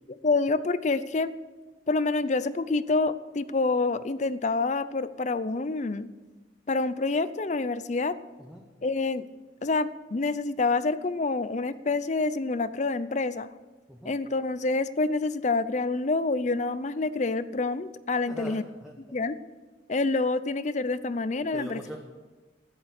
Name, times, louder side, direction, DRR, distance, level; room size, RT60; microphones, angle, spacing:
voice 1, 0.1-1.3 1.9-6.1 6.7-8.2 8.8-9.3 9.6-13.5 14.0-18.6 19.1-19.4 19.9-21.8, left 3 dB, 40° left, 15 dB, 0.5 m, -27 dB
voice 2, 18.3-18.9 21.5-22.0, equal, 5° right, -1 dB, 1.2 m, -41 dB
13.5 x 10.5 x 6.6 m, 1.3 s
head